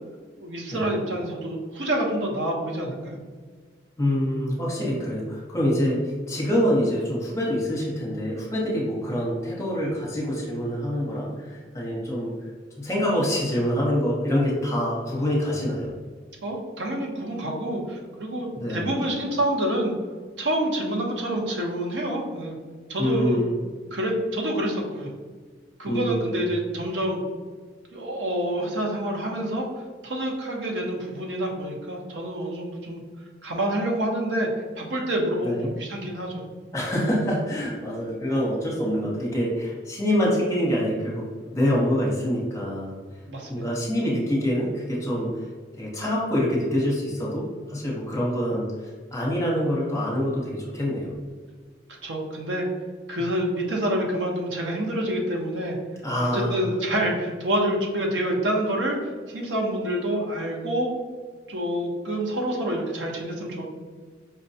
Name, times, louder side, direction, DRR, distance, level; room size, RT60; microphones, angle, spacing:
voice 1, 0.4-3.2 16.4-19.9 20.4-22.6 22.9-23.4 23.9-25.1 25.8-27.2 27.9-29.7 30.0-33.0 33.4-34.5 34.8-36.4 43.3-43.7 52.0-52.7 53.1-55.8 56.3-60.9 61.5-63.6, right 1 dB, 75° right, 0 dB, 0.7 m, -27 dB
voice 2, 4.0-6.0 6.3-12.3 12.8-15.9 18.6-18.8 23.0-23.5 25.8-26.4 35.4-35.7 36.7-43.0 43.5-45.5 45.8-48.7 49.1-51.1 56.0-56.6, equal, 15° left, -4 dB, 0.9 m, -25 dB
5.2 x 2.2 x 2.7 m, 1.5 s
head